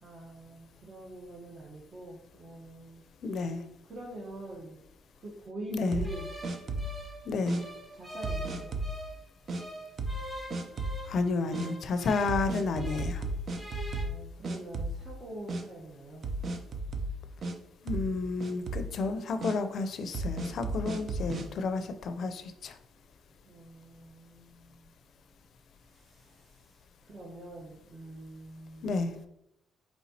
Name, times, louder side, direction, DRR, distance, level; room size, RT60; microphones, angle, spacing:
voice 1, 0.0-3.0 3.8-4.8 5.1-6.3 7.9-8.8 14.0-16.3 23.4-24.9 25.8-29.2, right 1 dB, 35° right, -4 dB, 0.9 m, -45 dB
voice 2, 3.2-3.6 5.7-6.0 7.3-7.6 11.1-13.2 17.8-22.8 28.8-29.1, left 3 dB, 65° left, 9 dB, 0.5 m, -31 dB
sound 1, 5.9-7.0 7.5-7.6 8.2-9.0 9.5-9.6 10.0-10.3 10.5-11.0 11.5-11.7 12.3-14.2 14.4-15.2 15.5-15.6 16.2-17.6 17.9-18.2 18.4-18.9 19.4-19.6 20.1-21.5, right 2 dB, 50° right, 0.5 m, -34 dB
sound 2, 6.0-9.2 9.6-13.2 13.5-14.0, right 1 dB, 5° right, 1.6 m, -44 dB
4.5 x 4.1 x 2.7 m, 0.79 s
cardioid pair, 90°, 0 cm